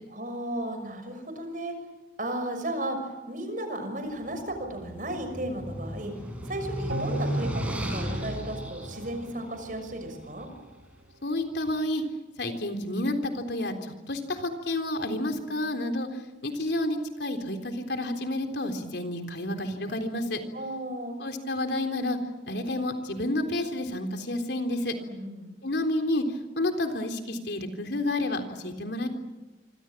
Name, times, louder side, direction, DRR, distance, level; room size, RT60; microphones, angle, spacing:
voice 1, 0.1-1.7 2.2-6.1 6.5-10.5 20.5-21.2 25.0-25.5, right 1 dB, 50° right, 7 dB, 6.3 m, -34 dB
sound 1, 4.3-10.6, equal, 5° right, 6.4 m, -34 dB
sound 2, 6.9-10.2 10.6-10.7, right 2 dB, 85° right, 1.5 m, -39 dB
voice 2, 11.2-12.0 12.4-20.4 21.2-22.2 22.5-24.9 25.6-29.1, left 1 dB, 70° left, 6 dB, 3.7 m, -30 dB
26.5 x 26.0 x 7.5 m, 1.2 s
head